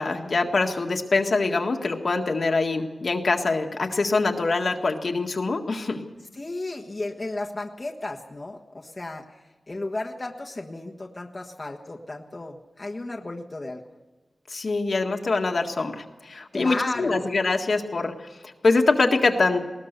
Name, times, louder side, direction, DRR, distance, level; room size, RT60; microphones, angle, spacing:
voice 1, 0.0-6.0 14.5-19.6, left 3 dB, 60° left, 3 dB, 1.8 m, -24 dB
voice 2, 6.4-9.3 9.7-13.8 16.5-17.3, left 2 dB, 30° left, 0 dB, 1.5 m, -34 dB
20.0 x 19.5 x 6.8 m, 1.2 s
wide cardioid pair, 100°, 0 cm